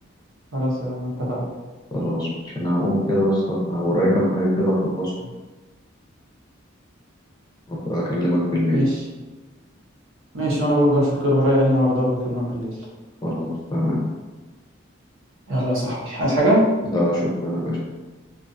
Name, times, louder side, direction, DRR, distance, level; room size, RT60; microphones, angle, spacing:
voice 1, 0.5-1.4 8.7-8.9 10.3-12.7 15.5-16.6, equal, 80° right, -5 dB, 0.9 m, -21 dB
voice 2, 1.9-5.3 7.7-8.8 13.2-14.0 16.8-17.8, equal, 20° left, -5 dB, 0.5 m, -23 dB
2.5 x 2.4 x 2.5 m, 1.2 s
head